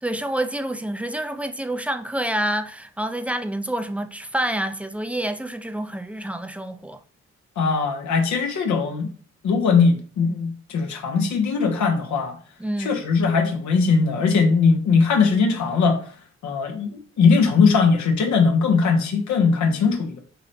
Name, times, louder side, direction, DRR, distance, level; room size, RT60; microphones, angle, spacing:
voice 1, 0.0-7.0 12.6-13.0, right 1 dB, 5° right, 0.4 m, -28 dB
voice 2, 7.6-9.1 9.4-12.3 12.8-16.0 16.4-20.2, left 5 dB, 75° left, 0.8 m, -20 dB
3.9 x 2.8 x 3.2 m
cardioid pair, 65°, 29 cm